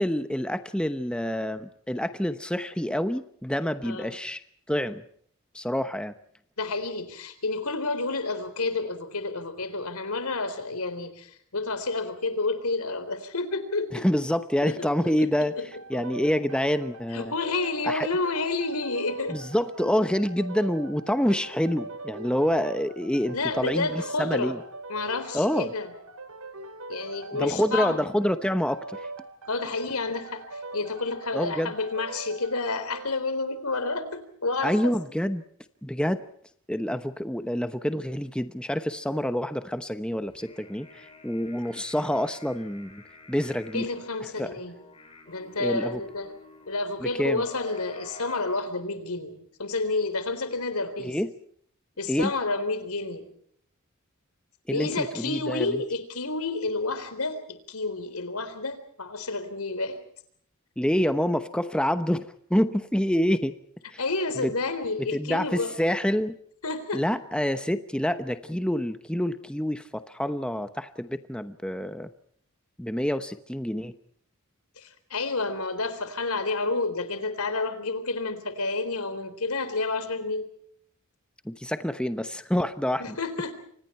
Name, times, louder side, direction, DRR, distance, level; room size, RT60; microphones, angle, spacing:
voice 1, 0.0-4.4 4.7-5.0 5.5-6.1 13.9-15.6 15.9-17.3 17.8-18.1 19.3-24.6 25.3-25.7 27.3-29.1 31.3-31.7 34.6-35.4 35.8-36.2 36.7-43.0 43.3-43.9 44.4-44.6 45.6-46.0 47.0-47.4 51.0-51.3 52.1-52.3 54.7-55.8 60.8-63.5 63.9-64.0 64.4-64.5 65.0-66.4 66.9-72.1 72.8-73.9 81.4-83.2, equal, 5° left, 10 dB, 0.9 m, -27 dB
voice 2, 6.6-14.1 14.6-14.9 15.2-15.3 15.6-15.7 17.1-19.4 23.3-24.6 24.9-25.9 26.9-28.0 29.5-34.9 43.7-44.7 45.3-46.3 46.7-51.2 52.0-53.3 54.7-60.0 64.0-65.7 66.6-67.0 74.8-80.5 83.0-83.5, left 3 dB, 90° left, 11 dB, 3.9 m, -30 dB
sound 1, 15.7-33.1, right 3 dB, 80° right, 3.1 m, -41 dB
sound 2, 40.3-48.7, left 3 dB, 25° left, 7.3 m, -48 dB
30.0 x 25.5 x 4.4 m, 0.63 s
head